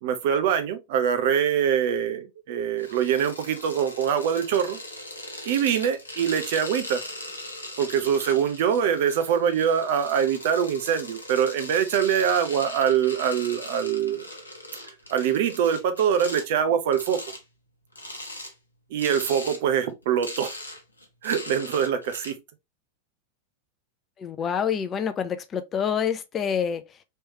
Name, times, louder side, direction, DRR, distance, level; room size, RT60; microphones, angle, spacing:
voice 1, 0.0-4.8 5.5-7.0 7.8-14.2 15.1-17.2 18.9-20.5 21.2-22.4, right 8 dB, 50° right, 0.6 m, -24 dB
sound 1, 2.8-16.5 16.9-17.4 17.9-18.5 19.0-19.6 19.9-22.3, left 1 dB, 80° left, 0.8 m, -39 dB
voice 2, 24.2-27.0, left 7 dB, 25° left, 0.4 m, -27 dB
3.3 x 3.1 x 2.8 m
figure-of-eight pair, 90°, 0 cm